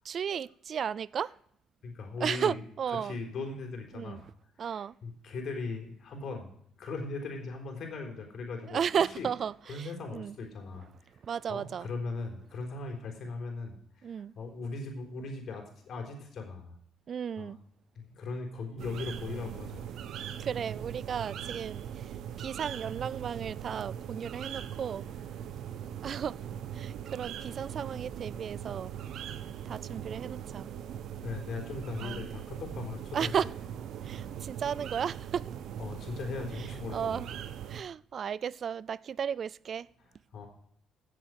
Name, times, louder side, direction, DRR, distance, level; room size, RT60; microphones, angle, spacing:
voice 1, 0.0-1.3 2.2-3.2 3.9-4.2 4.6-5.0 8.7-10.4 11.2-11.9 14.0-14.3 17.1-17.6 20.4-25.1 26.0-26.4 26.7-28.9 29.7-30.7 32.0-32.2 33.1-33.5 34.0-35.5 36.5-37.3 37.7-39.9, right 7 dB, 50° right, 0.4 m, -34 dB
voice 2, 1.8-2.6 3.0-4.3 4.7-6.5 6.8-8.8 9.2-9.3 9.7-10.9 11.5-16.7 17.4-17.5 18.0-19.9 31.2-33.3 35.8-37.2 40.3-40.5, left 3 dB, 60° left, 4.0 m, -39 dB
sound 1, 18.8-37.8, right 9 dB, 70° right, 1.0 m, -40 dB
15.5 x 7.6 x 4.8 m
cardioid pair, 95°, 0 cm